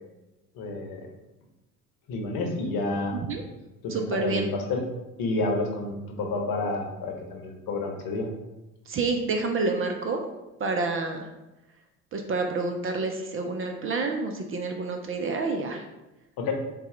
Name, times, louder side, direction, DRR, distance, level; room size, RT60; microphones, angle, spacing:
voice 1, 0.5-1.0 2.1-3.2 3.8-4.8 5.2-8.3 16.4-16.5, left 2 dB, 55° left, 2 dB, 0.9 m, -29 dB
voice 2, 3.9-4.5 8.9-10.2 10.6-11.3 12.1-15.8, right 3 dB, 30° right, 3 dB, 0.5 m, -28 dB
4.0 x 2.3 x 3.7 m, 1.0 s
figure-of-eight pair, 60°, 44 cm